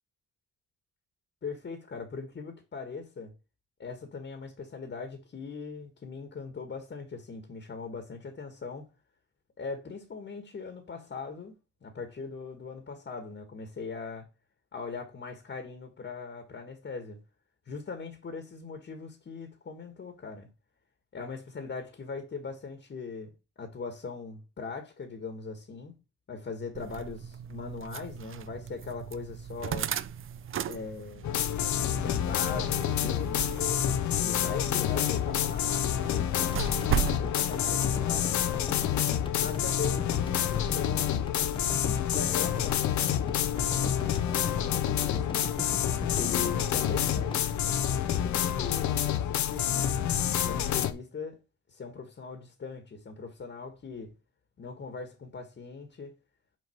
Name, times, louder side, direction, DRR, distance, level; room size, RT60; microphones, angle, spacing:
voice 1, 1.4-3.3 3.8-8.9 9.6-11.6 11.8-14.3 14.7-17.2 17.7-20.5 21.1-26.0 26.3-29.9 30.7-31.3 31.9-36.7 37.2-38.5 39.4-41.3 42.1-45.4 46.1-47.8 48.1-49.9 50.4-51.4 51.7-54.1 54.6-56.1, left 5 dB, 40° left, 1.6 m, -40 dB
sound 1, 26.7-37.2, right 8 dB, 45° right, 0.5 m, -37 dB
sound 2, 31.2-50.9, left 10 dB, 70° left, 0.8 m, -28 dB
sound 3, 36.4-48.6 49.0-49.1, left 3 dB, 15° left, 0.8 m, -41 dB
6.4 x 4.9 x 4.5 m
cardioid pair, 90°, 30 cm